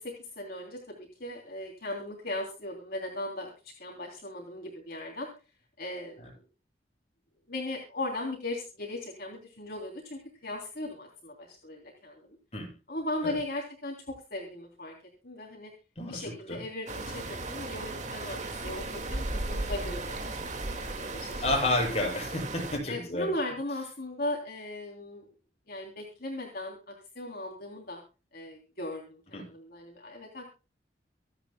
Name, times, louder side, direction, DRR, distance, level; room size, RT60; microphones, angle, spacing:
voice 1, 0.0-5.3 5.8-6.4 7.5-12.3 12.9-14.9 15.2-15.7 16.1-21.4 22.9-25.3 25.7-28.0 28.3-30.5, left 1 dB, 55° left, 0 dB, 3.2 m, -38 dB
voice 2, 16.0-16.6 21.4-23.3 29.3-29.4, left 1 dB, 35° left, 0 dB, 7.3 m, -30 dB
sound 1, 16.9-22.8, right 2 dB, 40° right, 2.0 m, -36 dB
26.0 x 9.0 x 2.2 m, 0.32 s
head